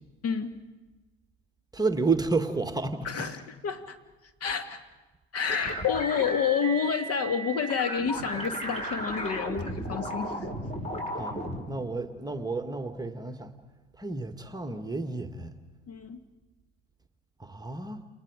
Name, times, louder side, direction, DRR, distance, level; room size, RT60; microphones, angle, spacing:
voice 1, 0.2-0.6 3.0-4.0 4.4-4.8 5.3-10.5 15.9-16.2, left 7 dB, 40° left, 8 dB, 2.1 m, -29 dB
voice 2, 1.7-3.3 11.2-13.5 14.0-15.5 17.4-18.0, right 3 dB, 10° right, 6 dB, 1.8 m, -31 dB
sound 1, 5.5-11.6, right 1 dB, 15° left, 5.9 m, -34 dB
30.0 x 29.0 x 5.1 m, 1.2 s
figure-of-eight pair, 70°, 37 cm